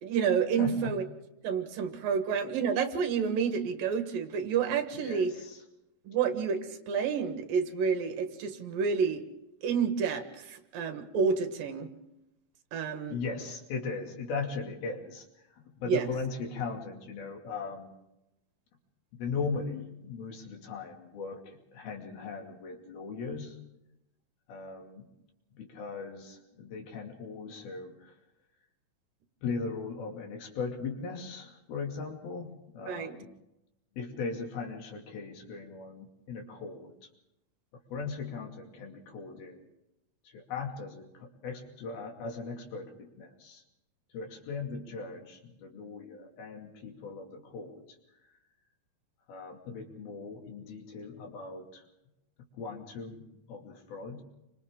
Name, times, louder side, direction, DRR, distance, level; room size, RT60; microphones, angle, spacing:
voice 1, 0.0-1.0 1.4-5.4 6.1-9.2 9.6-11.9 12.7-13.2 15.9-16.1 32.9-33.1, right 6 dB, 70° right, 7 dB, 3.1 m, -29 dB
voice 2, 0.6-1.0 4.9-5.6 13.1-17.9 19.1-23.6 24.5-25.1 25.6-28.2 29.4-33.3 34.0-36.9 37.9-39.7 40.2-43.6 44.1-47.8 49.3-51.8 52.6-54.2, left 4 dB, 85° left, 1 dB, 4.4 m, -38 dB
29.5 x 25.0 x 3.8 m, 0.89 s
omnidirectional pair, 4.2 m